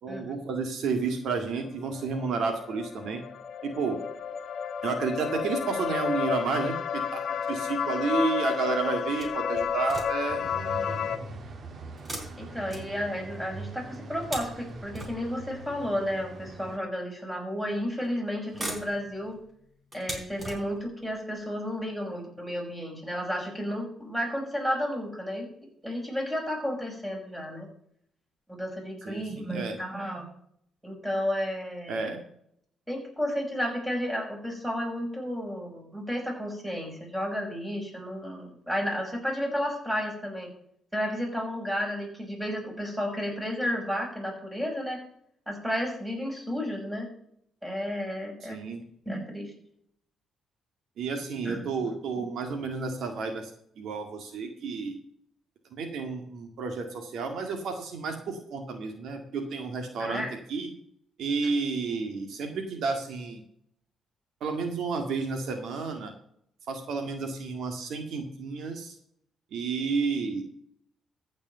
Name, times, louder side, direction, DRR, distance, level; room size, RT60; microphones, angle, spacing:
voice 1, 0.0-3.2 3.6-4.0 4.8-7.2 7.5-10.4 29.0-29.8 31.9-32.2 48.5-48.8 51.0-53.5 53.8-55.0 55.7-60.7 61.2-63.4 64.4-66.1 66.7-69.0 69.5-70.4, right 4 dB, 70° right, 5 dB, 1.9 m, -31 dB
sound 1, 1.9-11.2, left 7 dB, 60° left, 1.2 m, -31 dB
sound 2, 9.2-10.4 12.0-13.4 13.9-15.6 16.5-16.6 17.7-18.1 18.4-21.0 21.7-21.8 22.2-22.3, right 1 dB, 20° right, 4.2 m, -41 dB
sound 3, 10.3-16.8, right 3 dB, 50° right, 1.6 m, -42 dB
voice 2, 12.4-19.4 19.9-25.5 25.8-27.7 28.5-30.3 30.8-32.2 32.9-40.5 40.9-45.0 45.5-47.1 47.6-48.6 49.1-49.5 51.4-51.6 52.2-52.3 60.0-60.3, equal, 5° right, 0 dB, 5.5 m, -32 dB
14.5 x 5.4 x 6.7 m, 0.67 s
cardioid pair, 90°, 0 cm